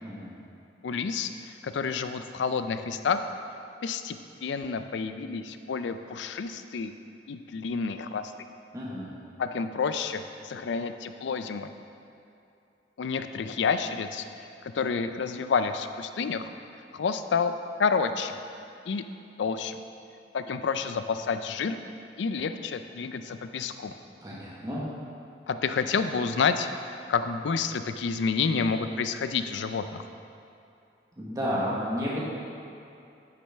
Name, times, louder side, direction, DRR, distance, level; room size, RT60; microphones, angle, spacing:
voice 1, 0.0-0.3 8.7-9.1 24.2-24.8 31.2-32.2, equal, 20° right, -7 dB, 1.2 m, -31 dB
voice 2, 0.8-3.2 3.8-6.9 7.3-8.3 9.4-11.7 13.0-14.2 14.6-16.5 16.9-17.5 17.8-18.4 18.9-19.0 19.4-19.8 20.3-21.8 22.2-23.9 25.5-30.0, left 5 dB, 90° left, 9 dB, 0.4 m, -29 dB
9.8 x 6.1 x 3.4 m, 2.7 s
head